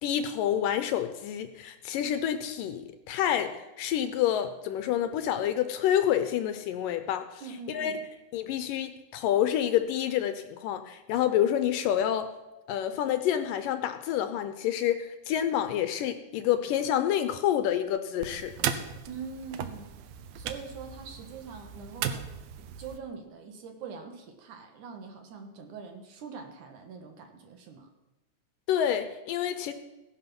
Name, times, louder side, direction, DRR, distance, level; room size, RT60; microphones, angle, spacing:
voice 1, 0.0-7.4 7.7-7.9 8.3-12.3 12.7-18.5 28.7-29.7, left 10 dB, 75° left, 9 dB, 2.2 m, -28 dB
voice 2, 7.4-8.0 19.1-19.9 20.4-22.3 22.6-27.9, right 5 dB, 65° right, 5 dB, 2.5 m, -43 dB
sound 1, 18.2-23.0, right 9 dB, 80° right, 2.5 m, -36 dB
16.5 x 11.0 x 6.0 m, 1.0 s
omnidirectional pair, 4.3 m